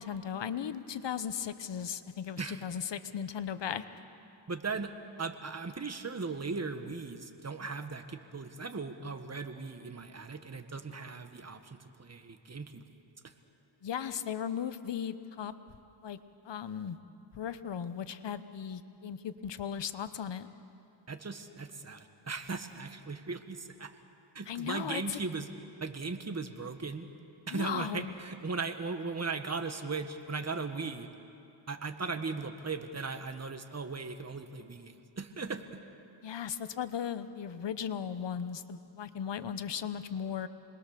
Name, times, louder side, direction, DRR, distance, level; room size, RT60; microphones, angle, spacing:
voice 1, 0.0-3.8 13.8-15.5 16.0-16.2 16.4-17.0 17.3-20.5 24.5-25.2 27.5-28.1 36.2-40.5, left 8 dB, 60° left, 12 dB, 1.1 m, -37 dB
voice 2, 4.5-4.9 5.2-12.8 13.2-13.3 21.1-24.0 24.3-25.5 25.8-27.1 27.5-31.1 31.7-35.8, right 4 dB, 30° right, 7 dB, 1.7 m, -38 dB
27.0 x 21.0 x 6.8 m, 2.6 s
cardioid pair, 65°, 48 cm